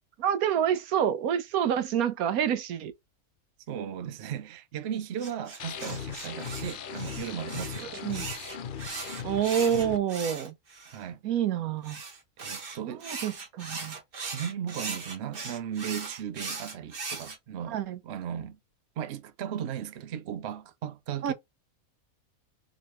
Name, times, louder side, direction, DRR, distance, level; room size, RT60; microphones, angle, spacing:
voice 1, 0.2-2.9 7.8-8.2 9.2-10.5 11.2-12.0 12.8-14.0 17.7-18.0 21.2-21.3, right 9 dB, 80° right, 1.2 m, -28 dB
voice 2, 3.7-8.2 10.9-11.2 12.4-13.0 14.2-18.6 19.0-21.3, right 9 dB, 60° right, 0.8 m, -36 dB
sound 1, 5.2-11.0 11.8-17.4, right 4 dB, 40° right, 1.2 m, -39 dB
sound 2, 5.6-10.0, left 7 dB, 70° left, 0.5 m, -38 dB
3.9 x 3.1 x 4.2 m
omnidirectional pair, 1.5 m